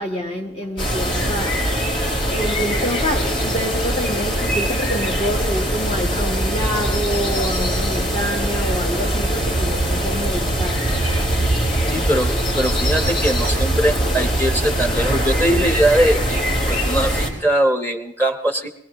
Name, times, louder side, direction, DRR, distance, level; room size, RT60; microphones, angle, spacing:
voice 1, 0.0-1.9 2.3-11.0, equal, 35° left, 1.4 m, -27 dB
sound 1, 0.8-17.3, equal, 75° left, 4.4 m, -21 dB
voice 2, 11.9-18.7, right 1 dB, 10° left, 1.1 m, -21 dB
22.0 x 20.5 x 3.1 m
head